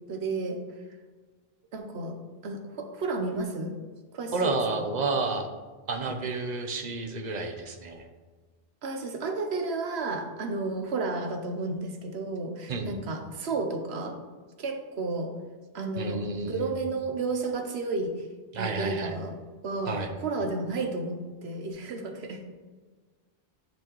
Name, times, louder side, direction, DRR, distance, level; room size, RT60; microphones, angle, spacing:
voice 1, 0.1-0.6 1.7-2.2 2.4-3.7 4.1-4.9 8.8-14.2 14.6-15.3 15.7-16.2 16.5-18.2 18.6-19.3 19.6-22.4, right 3 dB, 85° right, 5 dB, 1.1 m, -32 dB
voice 2, 4.3-5.5 5.9-8.0 12.7-13.0 16.0-16.7 18.5-19.1 19.9-20.1, right 3 dB, 45° right, 4 dB, 0.9 m, -30 dB
10.5 x 4.5 x 3.1 m, 1.4 s
omnidirectional pair, 1.1 m